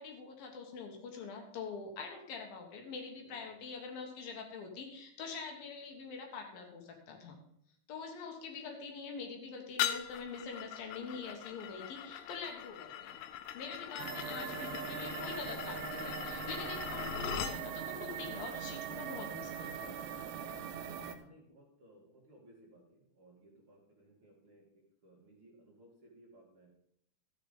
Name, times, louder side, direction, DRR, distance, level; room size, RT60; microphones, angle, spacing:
voice 1, 0.0-7.4 7.9-13.2 13.5-20.0, left 5 dB, 65° left, 2 dB, 2.7 m, -45 dB
voice 2, 3.2-3.6 21.2-26.7, right 1 dB, 40° right, -4 dB, 2.1 m, -61 dB
sound 1, 9.8-17.6, left 10 dB, 85° left, 2.7 m, -41 dB
sound 2, 14.0-21.2, right 9 dB, 80° right, 2.8 m, -41 dB
13.0 x 6.7 x 5.3 m, 0.72 s
omnidirectional pair, 5.0 m